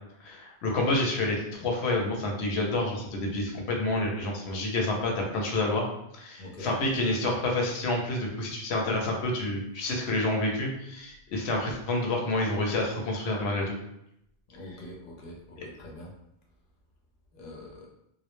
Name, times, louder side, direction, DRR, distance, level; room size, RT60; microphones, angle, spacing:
voice 1, 0.2-5.9 6.1-13.8 14.7-14.8 15.6-15.7, left 2 dB, 85° left, 0 dB, 0.8 m, -28 dB
voice 2, 6.4-6.7 14.6-15.4 15.6-16.1 17.4-17.9, left 1 dB, 60° left, -1 dB, 0.7 m, -43 dB
2.2 x 2.0 x 2.9 m, 0.80 s
omnidirectional pair, 1.1 m